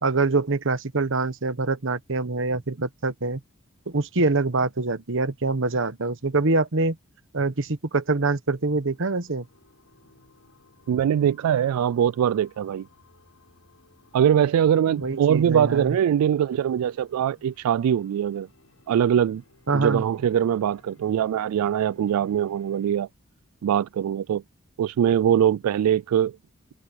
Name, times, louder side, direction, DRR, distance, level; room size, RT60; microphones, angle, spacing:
voice 1, 0.0-3.4 3.9-7.0 7.3-9.5 14.9-16.0 19.7-20.0, right 3 dB, 60° right, 1.2 m, -25 dB
sound 1, 8.8-23.0, left 2 dB, 70° left, 6.1 m, -59 dB
voice 2, 10.9-12.9 14.1-18.5 18.9-19.4 19.7-23.1 23.6-24.4 24.8-26.3, right 9 dB, 85° right, 0.3 m, -22 dB
open air
head